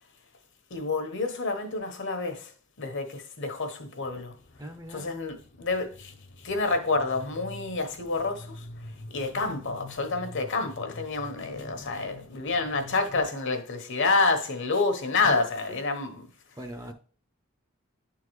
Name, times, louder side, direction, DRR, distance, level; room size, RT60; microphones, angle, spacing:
voice 1, 0.7-4.3 4.9-16.3, left 3 dB, 60° left, 1.0 m, -29 dB
sound 1, 4.0-13.2, left 1 dB, 40° left, 0.6 m, -46 dB
voice 2, 4.6-5.1 15.2-15.8 16.6-16.9, equal, 15° right, 0.6 m, -41 dB
10.5 x 3.8 x 3.1 m
head